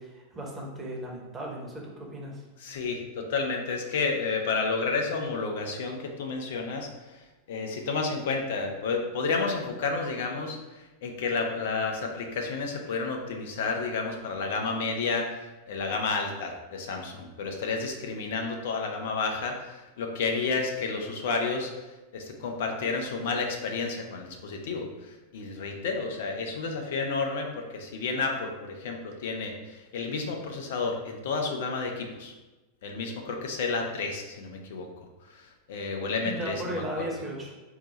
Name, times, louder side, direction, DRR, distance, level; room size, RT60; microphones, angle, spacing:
voice 1, 0.0-2.4 36.2-37.5, right 1 dB, 20° right, -1 dB, 1.0 m, -36 dB
voice 2, 2.6-6.9 7.5-21.7 22.1-32.3 32.8-37.2, left 4 dB, 55° left, 2 dB, 0.6 m, -31 dB
4.6 x 2.2 x 3.9 m, 1.1 s
figure-of-eight pair, 90°, 0 cm